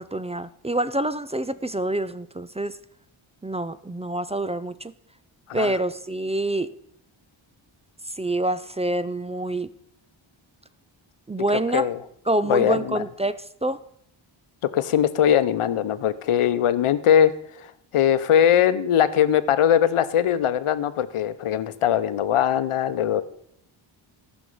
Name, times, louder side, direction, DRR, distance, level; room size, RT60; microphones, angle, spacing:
voice 1, 0.0-2.8 3.4-4.9 5.5-6.7 8.2-9.7 11.3-11.9 12.3-13.8, right 1 dB, 15° right, 15 dB, 0.3 m, -26 dB
voice 2, 5.5-5.8 11.7-12.0 12.5-13.0 14.7-23.2, left 9 dB, 85° left, 14 dB, 0.8 m, -21 dB
14.0 x 6.3 x 5.4 m, 0.69 s
wide cardioid pair, 100°, 49 cm